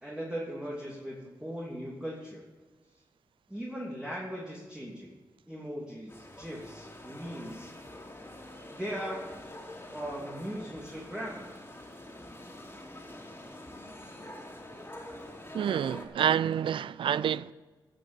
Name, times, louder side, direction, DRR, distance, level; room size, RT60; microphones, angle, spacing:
voice 1, 0.0-2.4 3.5-5.1 5.5-7.7 8.7-9.2 9.9-11.5, equal, 10° right, 2.9 m, -39 dB
sound 1, 6.1-16.1, left 1 dB, 25° left, 3.3 m, -46 dB
voice 2, 15.5-17.5, right 9 dB, 80° right, 0.4 m, -28 dB
14.5 x 6.6 x 7.4 m
cardioid pair, 55°, 9 cm